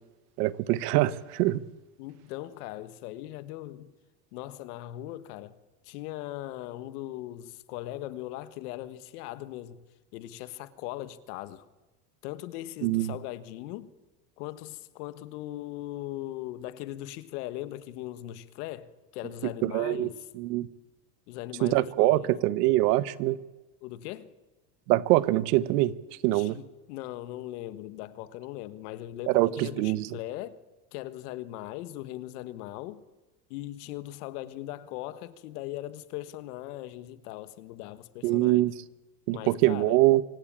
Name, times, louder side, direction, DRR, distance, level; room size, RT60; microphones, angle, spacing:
voice 1, 0.4-1.6 12.8-13.1 19.6-20.1 20.4-20.7 21.6-23.4 24.9-25.9 26.2-26.6 29.3-30.1 38.2-38.7 39.3-40.2, right 17 dB, 75° right, 1.2 m, -24 dB
voice 2, 2.0-3.9 4.3-5.6 5.8-9.8 10.1-11.7 12.2-13.9 14.4-20.2 21.3-22.3 23.8-24.3 26.3-30.6 30.9-33.0 33.5-38.6 39.3-40.0, left 14 dB, 75° left, 1.6 m, -39 dB
25.0 x 17.5 x 8.9 m
supercardioid pair, 155°, 47 cm